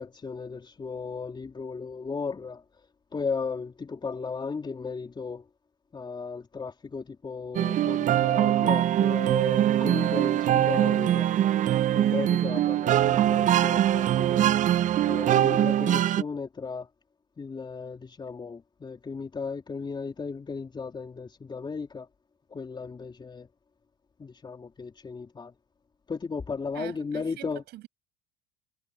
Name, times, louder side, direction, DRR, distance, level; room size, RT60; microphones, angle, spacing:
voice 1, 0.0-2.6 3.1-5.4 5.9-11.3 11.9-14.5 15.1-16.9 17.4-22.1 22.5-23.5 24.2-25.5 26.1-27.6, left 5 dB, 25° left, 3.3 m, -35 dB
sound 1, 7.5-16.2, right 11 dB, 40° right, 0.7 m, -23 dB
voice 2, 26.7-27.9, right 16 dB, 60° right, 6.8 m, -43 dB
hypercardioid pair, 85°, 19 cm